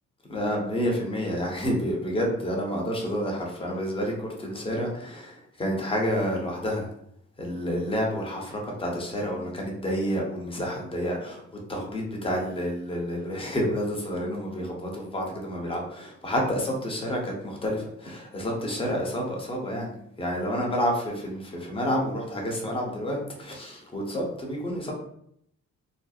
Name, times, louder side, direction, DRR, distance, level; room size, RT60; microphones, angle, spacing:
voice 1, 0.3-6.9 7.4-11.4 11.7-19.9 20.2-24.9, equal, 20° left, -1 dB, 0.7 m, -29 dB
2.6 x 2.0 x 2.3 m, 0.70 s
cardioid pair, 90°, 30 cm